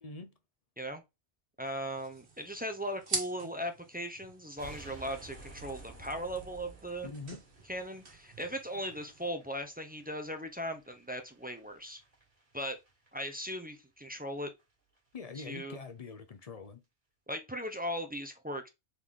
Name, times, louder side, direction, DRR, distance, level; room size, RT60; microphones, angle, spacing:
voice 1, 0.0-0.3 7.0-7.4 15.1-16.8, left 4 dB, 45° left, 0.5 m, -44 dB
voice 2, 1.6-7.1 7.7-12.0 12.5-12.8 13.1-14.5 15.4-15.8 17.3-18.7, equal, 15° right, 0.3 m, -38 dB
sound 1, 1.6-9.3, right 3 dB, 65° right, 1.5 m, -45 dB
sound 2, 4.6-13.7 14.0-14.2 14.6-14.7 15.0-15.1 15.3-15.6 15.9-16.0, right 2 dB, 35° right, 1.9 m, -54 dB
4.0 x 3.1 x 3.5 m
omnidirectional pair, 1.2 m